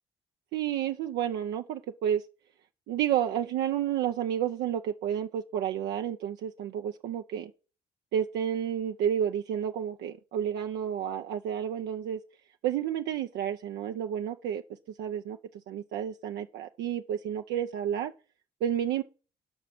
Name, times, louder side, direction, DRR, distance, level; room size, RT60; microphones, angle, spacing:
voice 1, 0.5-2.2 2.9-7.5 8.1-12.2 12.6-14.6 15.0-15.4 15.7-18.1 18.6-19.0, right 10 dB, 75° right, 0.6 m, -30 dB
10.5 x 5.8 x 6.0 m
hypercardioid pair, 55°, 18 cm